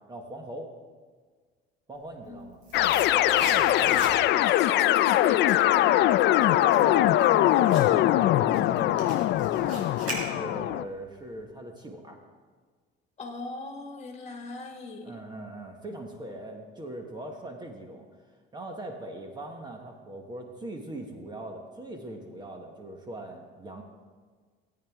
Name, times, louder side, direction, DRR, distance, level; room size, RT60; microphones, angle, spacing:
voice 1, 0.1-0.7 1.9-2.6 6.3-9.2 9.5-9.9 10.1-12.2 15.0-18.1 18.5-23.8, right 1 dB, 20° right, 3 dB, 1.2 m, -40 dB
sound 1, 2.1-4.5 4.9-10.8 11.1-11.2, right 2 dB, 85° right, 4.2 m, -41 dB
sound 2, 2.7-10.8, left 14 dB, 60° left, 0.4 m, -22 dB
voice 2, 3.1-5.9 13.2-15.2, left 4 dB, 35° left, 3 dB, 1.8 m, -38 dB
18.0 x 8.9 x 3.6 m, 1.6 s
cardioid pair, 130°, 21 cm